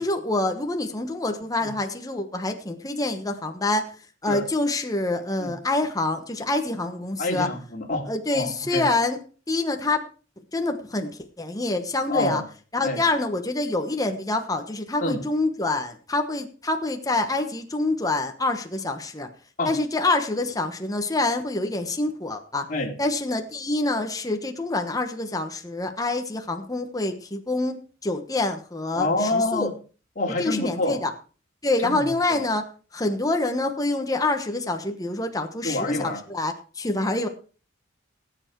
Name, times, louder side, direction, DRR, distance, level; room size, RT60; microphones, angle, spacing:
voice 1, 0.0-3.9 4.2-7.5 8.1-9.2 9.5-10.1 10.5-11.1 11.4-12.4 12.7-19.3 19.6-22.7 23.0-29.7 30.4-31.1 31.6-32.6 32.9-37.3, left 2 dB, 20° left, 5 dB, 1.2 m, -26 dB
voice 2, 7.2-8.9 12.1-12.4 12.8-13.0 15.0-15.2 19.6-19.7 22.7-22.9 28.9-29.7 30.2-31.0 31.8-32.4 35.6-36.2, left 2 dB, 40° left, 0 dB, 2.8 m, -27 dB
18.0 x 8.1 x 4.6 m, 0.38 s
head